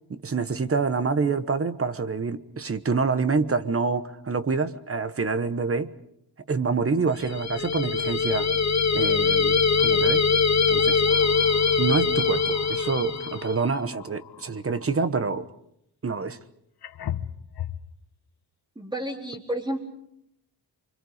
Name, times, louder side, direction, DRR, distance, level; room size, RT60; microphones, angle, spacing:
voice 1, 0.1-5.9 6.5-8.5 8.9-10.3 10.7-11.0 11.8-15.4 16.0-16.4, right 4 dB, 30° right, 12 dB, 1.2 m, -26 dB
sound 1, 7.2-7.3 7.7-7.9 9.7-9.9 10.7-15.0 16.2-16.3 16.8-17.9, left 10 dB, 60° left, 1.2 m, -40 dB
sound 2, 7.2-13.6, left 5 dB, 40° left, 1.1 m, -22 dB
voice 2, 18.8-19.8, right 1 dB, 10° right, 2 dB, 4.0 m, -31 dB
29.5 x 24.5 x 5.0 m, 0.76 s
wide cardioid pair, 135°, 44 cm